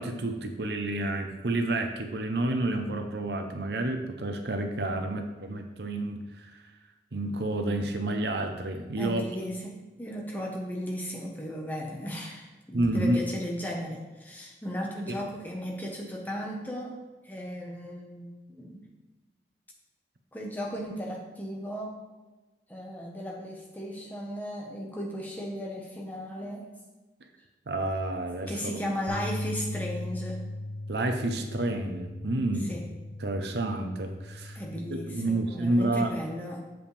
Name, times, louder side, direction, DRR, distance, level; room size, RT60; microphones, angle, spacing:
voice 1, 0.0-6.6 7.1-9.2 12.7-13.2 15.1-15.2 27.7-28.7 30.9-32.7 33.2-34.6 35.1-36.1, right 2 dB, 75° right, 5 dB, 0.8 m, -29 dB
voice 2, 9.0-18.8 20.3-22.0 22.7-26.7 28.5-30.5 32.7-32.9 34.5-36.6, equal, 10° left, -1 dB, 1.2 m, -36 dB
Bass guitar, 29.1-35.3, left 1 dB, 70° left, 1.1 m, -38 dB
7.9 x 7.1 x 3.4 m, 1.2 s
head